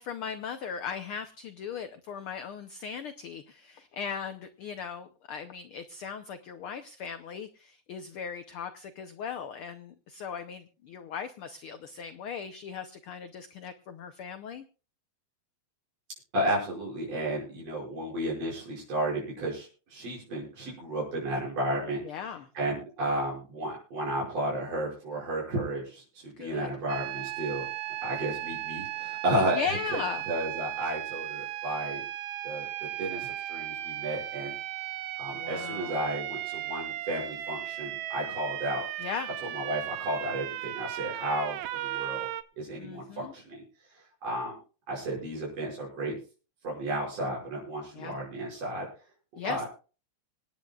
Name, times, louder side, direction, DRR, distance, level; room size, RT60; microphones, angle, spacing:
voice 1, 0.0-14.6 22.0-22.5 26.4-26.7 29.5-30.2 35.3-36.1 39.0-39.3 42.8-43.3 47.9-48.2 49.4-49.6, left 7 dB, 80° left, 9 dB, 1.2 m, -38 dB
voice 2, 16.3-22.0 22.6-27.7 28.0-29.6 29.9-30.0 30.3-32.0 32.4-32.7 33.0-34.5 35.2-38.8 39.4-42.3 42.6-43.6 44.2-44.6 44.9-46.2 46.6-48.8 49.4-49.7, right 1 dB, 55° right, -4 dB, 6.9 m, -32 dB
sound 1, 26.9-42.4, right 14 dB, 75° right, 1.4 m, -36 dB
25.5 x 10.0 x 2.4 m, 0.36 s
omnidirectional pair, 3.4 m